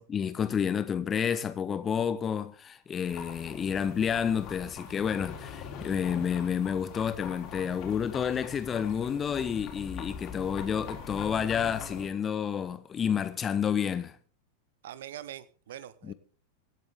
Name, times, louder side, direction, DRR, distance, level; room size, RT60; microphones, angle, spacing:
voice 1, 0.0-14.2 16.0-16.1, left 7 dB, 20° left, 0.8 m, -30 dB
sound 1, 3.1-12.1, left 6 dB, 40° left, 3.5 m, -42 dB
voice 2, 14.8-16.1, right 12 dB, 60° right, 0.8 m, -43 dB
24.5 x 8.5 x 3.6 m
figure-of-eight pair, 90°, 0 cm